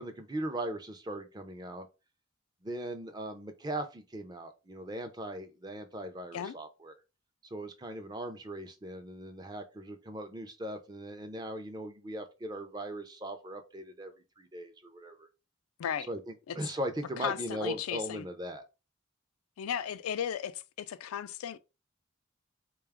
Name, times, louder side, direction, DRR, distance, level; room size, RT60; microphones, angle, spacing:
voice 1, 0.0-1.9 2.6-6.9 7.5-15.3 16.1-18.6, right 1 dB, 20° right, 0.4 m, -39 dB
voice 2, 17.2-18.2 19.6-21.6, left 8 dB, 90° left, 0.3 m, -35 dB
3.7 x 2.3 x 3.4 m
head